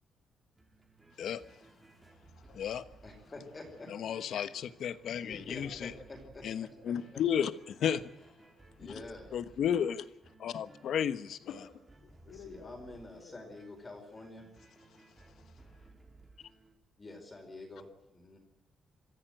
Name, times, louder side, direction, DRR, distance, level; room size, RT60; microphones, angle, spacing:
sound 1, 0.6-16.7, right 2 dB, 15° right, 3.4 m, -59 dB
voice 1, 2.5-2.8 3.9-5.9 6.4-8.0 9.3-10.1 10.4-11.4, left 8 dB, 65° left, 14 dB, 1.1 m, -33 dB
voice 2, 3.0-3.9 5.2-7.2 8.8-9.3 12.3-14.5 17.0-18.4, left 2 dB, 25° left, 2 dB, 4.7 m, -48 dB
voice 3, 11.5-13.5, left 7 dB, 90° left, 5 dB, 2.3 m, -50 dB
25.5 x 15.5 x 7.9 m, 0.89 s
cardioid pair, 150°, 0 cm